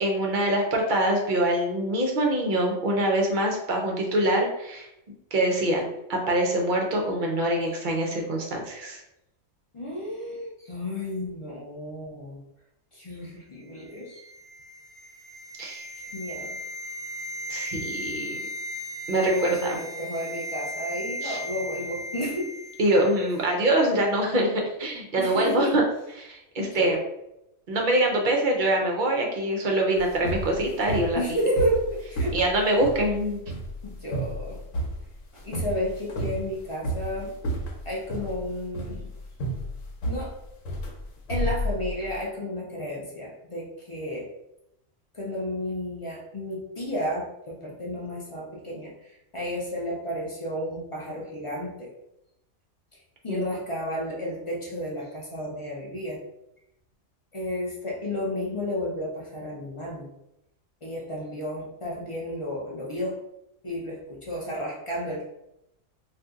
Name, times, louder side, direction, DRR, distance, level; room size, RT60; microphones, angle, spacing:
voice 1, 0.0-4.9 5.3-5.8 6.1-9.0 15.6-15.9 17.5-18.4 19.1-19.3 19.6-19.7 21.2-21.4 22.8-25.8 26.2-27.0 27.7-31.2 32.3-33.4 53.3-53.4, right 1 dB, 50° right, 0 dB, 0.6 m, -24 dB
voice 2, 9.7-12.4 12.9-14.2 16.0-16.6 18.4-18.5 19.2-22.5 25.2-25.8 26.6-27.0 31.1-32.4 33.8-34.6 35.3-37.3 37.8-39.1 40.1-40.4 41.3-44.3 45.1-51.9 53.2-56.2 57.3-60.1 60.8-63.2 63.6-65.3, equal, 40° left, -3 dB, 0.4 m, -32 dB
sound 1, 13.8-23.0 23.3-23.5, left 1 dB, 20° left, 1.1 m, -36 dB
sound 2, 30.0-42.2, right 1 dB, 75° left, 1.1 m, -32 dB
2.7 x 2.4 x 3.5 m, 0.84 s
omnidirectional pair, 1.4 m